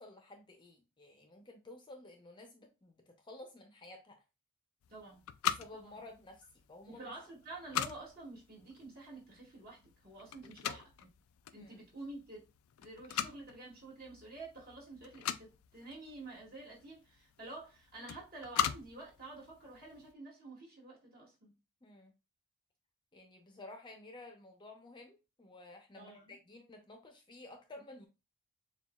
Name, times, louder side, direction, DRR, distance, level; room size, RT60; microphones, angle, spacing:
voice 1, 0.0-4.2 5.4-7.1 10.4-10.8 11.5-11.8 21.8-22.1 23.1-28.1, left 2 dB, 20° left, 0.7 m, -53 dB
sound 1, 4.8-20.1, left 9 dB, 85° left, 0.4 m, -42 dB
voice 2, 4.9-5.2 5.7-6.0 6.9-10.8 11.5-12.5 12.8-21.5 25.9-26.4, right 2 dB, 45° right, 2.0 m, -49 dB
7.0 x 2.4 x 2.3 m
head